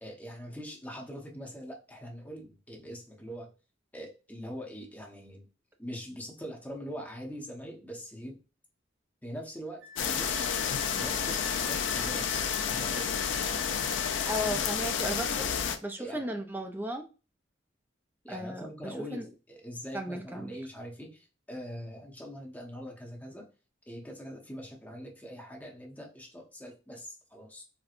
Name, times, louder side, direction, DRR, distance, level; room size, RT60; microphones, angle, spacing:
voice 1, 0.0-3.5 3.9-5.5 5.8-8.4 9.2-10.6 10.9-12.3 12.6-13.3 14.3-14.9 16.0-16.3 18.2-23.4 23.9-27.6, equal, 10° left, -1 dB, 0.7 m, -43 dB
Wind instrument woodwind instrument, 9.8-14.6, left 2 dB, 65° right, 0.7 m, -43 dB
sound 1, 10.0-15.8, left 7 dB, 70° left, 0.4 m, -30 dB
voice 2, 14.3-15.5 15.8-17.0 18.3-19.2 19.9-20.5, equal, 10° right, 5 dB, 0.4 m, -35 dB
4.3 x 2.1 x 2.4 m, 0.32 s
head